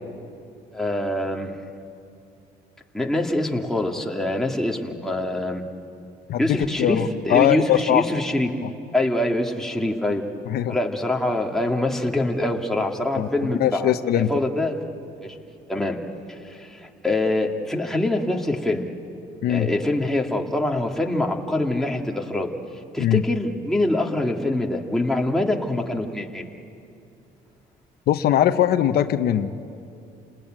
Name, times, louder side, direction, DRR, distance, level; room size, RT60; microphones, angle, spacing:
voice 1, 0.7-1.5 2.9-5.6 6.4-8.5 8.9-10.2 10.7-14.8 15.2-15.4 15.7-16.0 16.3-18.9 19.5-22.5 22.9-26.5, left 1 dB, 5° left, 0 dB, 2.3 m, -24 dB
voice 2, 6.3-8.0 10.5-10.8 13.2-13.3 13.6-14.3 19.4-19.7 23.0-23.2 28.1-29.5, left 11 dB, 65° left, 9 dB, 1.0 m, -21 dB
29.0 x 19.5 x 9.0 m, 2.6 s
cardioid pair, 110°, 17 cm